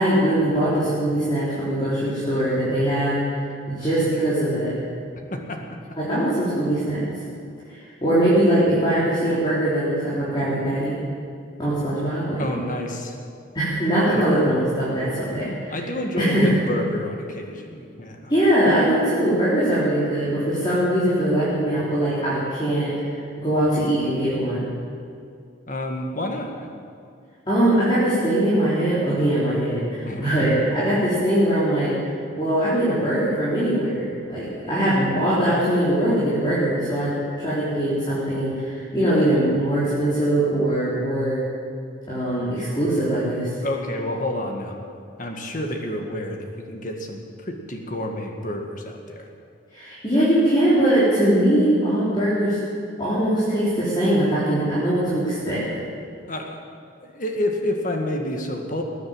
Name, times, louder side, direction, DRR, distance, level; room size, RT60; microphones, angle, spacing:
voice 1, 0.0-3.2 3.7-4.7 6.0-7.0 7.7-11.0 11.6-12.5 13.5-15.8 16.2-16.6 18.3-22.9 23.4-24.6 27.5-41.4 42.1-43.5 49.7-52.6 53.0-55.7, right 1 dB, 25° left, -10 dB, 3.9 m, -21 dB
voice 2, 5.3-5.6 12.4-13.1 14.1-14.3 15.7-18.3 25.7-26.7 30.0-30.2 43.6-44.8 45.2-47.2 47.5-49.3 56.3-56.6 57.0-58.8, left 1 dB, 40° left, 2 dB, 1.8 m, -29 dB
20.0 x 9.5 x 7.3 m, 2.4 s
head